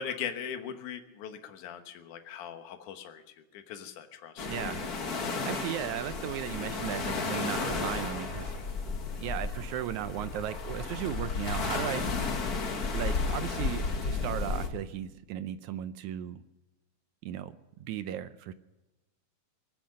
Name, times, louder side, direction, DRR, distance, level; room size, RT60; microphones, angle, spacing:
voice 1, 0.0-4.5, left 8 dB, 75° left, 7 dB, 2.6 m, -40 dB
sound 1, 4.4-14.7, left 4 dB, 40° left, 1.4 m, -33 dB
voice 2, 4.5-4.8 5.2-8.6 9.2-12.3 12.9-16.4 17.2-17.5 17.8-18.5, right 11 dB, 80° right, 12 dB, 1.9 m, -36 dB
23.5 x 9.2 x 6.4 m, 1.1 s
omnidirectional pair, 3.6 m